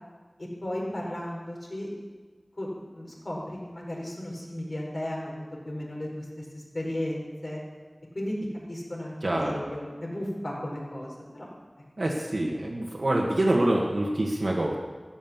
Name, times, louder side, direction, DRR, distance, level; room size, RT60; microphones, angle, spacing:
voice 1, 0.6-1.9 2.6-7.6 8.1-8.4 8.7-11.5, left 1 dB, 60° left, -3 dB, 4.4 m, -35 dB
voice 2, 9.2-9.6 12.0-14.7, right 1 dB, 75° right, -3 dB, 1.6 m, -26 dB
13.5 x 9.0 x 7.2 m, 1.4 s
wide cardioid pair, 50°, 0 cm